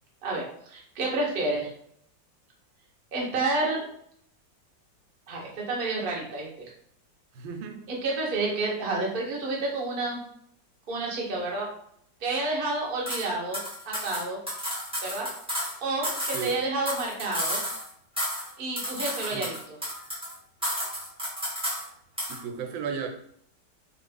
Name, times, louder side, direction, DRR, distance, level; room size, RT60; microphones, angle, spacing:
voice 1, 0.2-1.7 3.1-3.9 5.3-6.7 7.9-10.2 10.9-11.7 12.2-13.6 13.9-14.4 15.0-15.3 15.8-17.6 18.6-19.8, right 2 dB, 50° right, -2 dB, 0.6 m, -29 dB
voice 2, 7.3-7.9 16.3-16.6 19.3-19.5 22.3-23.1, right 6 dB, 85° right, 4 dB, 1.3 m, -34 dB
sound 1, 13.1-13.3 13.5-15.7 16.0-17.9 18.2-18.5 18.8-20.3 20.6-21.9 22.2-22.4, equal, 5° right, 0.6 m, -32 dB
3.0 x 2.5 x 3.3 m, 0.68 s
omnidirectional pair, 2.0 m